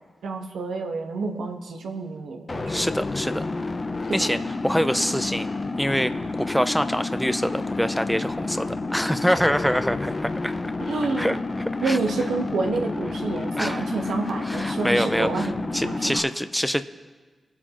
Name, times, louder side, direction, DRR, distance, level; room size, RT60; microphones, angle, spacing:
voice 1, 0.2-2.8 4.1-4.3 10.9-11.4 11.8-15.5 15.8-16.2, right 4 dB, 85° right, 2 dB, 1.2 m, -29 dB
sound 1, 2.5-16.2, left 3 dB, 45° left, 0.8 m, -30 dB
voice 2, 2.7-3.5 4.1-4.4 4.6-5.5 5.8-10.5 11.2-11.4 11.8-12.0 13.6-13.9 14.5-15.5 15.7-16.8, equal, ahead, 10 dB, 0.5 m, -25 dB
22.5 x 8.4 x 3.0 m, 1.4 s
supercardioid pair, 40°, 0 cm